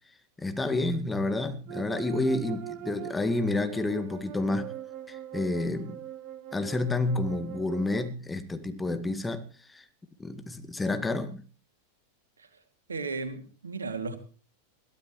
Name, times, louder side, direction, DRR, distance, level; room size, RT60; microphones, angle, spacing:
voice 1, 0.4-4.7 5.1-6.0 6.5-9.8 10.2-11.4, left 2 dB, 10° left, 1.8 m, -29 dB
sound 1, 1.7-8.1, right 12 dB, 40° right, 1.5 m, -42 dB
voice 2, 12.9-14.2, right 4 dB, 75° right, 2.4 m, -35 dB
21.5 x 15.0 x 3.1 m
figure-of-eight pair, 90°, 0 cm